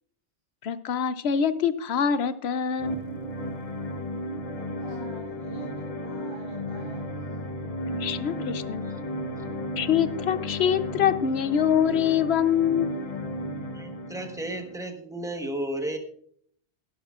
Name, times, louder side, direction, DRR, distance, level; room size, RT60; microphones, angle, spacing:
voice 1, 0.6-3.0 8.0-8.8 9.8-13.1, left 8 dB, 75° left, 14 dB, 0.9 m, -25 dB
sound 1, 2.8-14.8, equal, 35° left, 0.9 m, -34 dB
voice 2, 4.5-7.0 8.3-8.4, right 3 dB, 50° right, -4 dB, 2.0 m, -48 dB
voice 3, 13.7-16.0, right 1 dB, 5° right, 5 dB, 1.2 m, -33 dB
17.5 x 11.0 x 2.4 m, 0.64 s
omnidirectional pair, 1.1 m